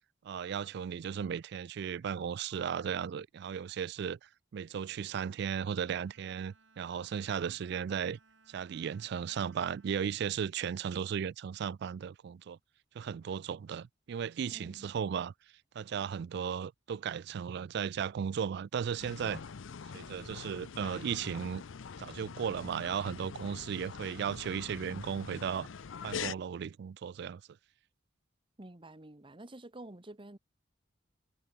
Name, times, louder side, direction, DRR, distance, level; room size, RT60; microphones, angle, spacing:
voice 1, 0.2-8.2 8.5-12.6 12.9-15.3 15.7-19.4 19.9-21.6 22.0-25.7 26.0-27.4, right 7 dB, 60° right, 0.3 m, -36 dB
Bowed string instrument, 5.9-11.4, right 4 dB, 75° right, 4.6 m, -66 dB
voice 2, 14.5-14.9 28.6-30.4, right 1 dB, 25° right, 1.2 m, -49 dB
sound 1, 19.0-26.3, left 6 dB, 85° left, 0.6 m, -44 dB
head